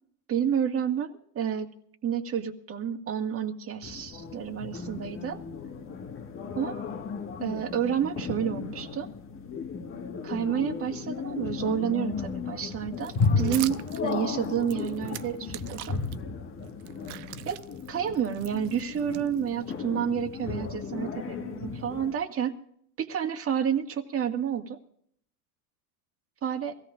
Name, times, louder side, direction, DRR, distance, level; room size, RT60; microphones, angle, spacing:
voice 1, 0.3-1.7 2.0-5.4 6.6-6.8 7.4-9.1 10.2-16.0 17.5-17.6 17.9-22.6 23.0-24.8 26.4-26.8, right 8 dB, 30° right, 4 dB, 2.0 m, -30 dB
sound 1, 3.8-22.1, left 5 dB, 25° left, 1.7 m, -34 dB
sound 2, 13.0-16.2 16.6-19.7, right 16 dB, 65° right, 1.0 m, -43 dB
25.0 x 17.0 x 2.6 m, 0.65 s
supercardioid pair, 115°, 46 cm